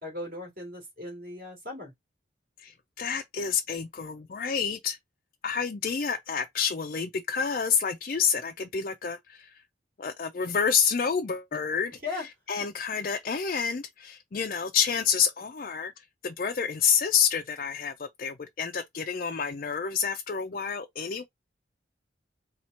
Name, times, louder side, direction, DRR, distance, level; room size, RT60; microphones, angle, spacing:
voice 1, 0.0-1.9 12.0-12.2, left 2 dB, 50° right, 2.6 m, -37 dB
voice 2, 2.6-5.0 5.4-9.5 10.0-21.2, left 6 dB, 45° left, 0.4 m, -29 dB
4.3 x 2.4 x 4.2 m
head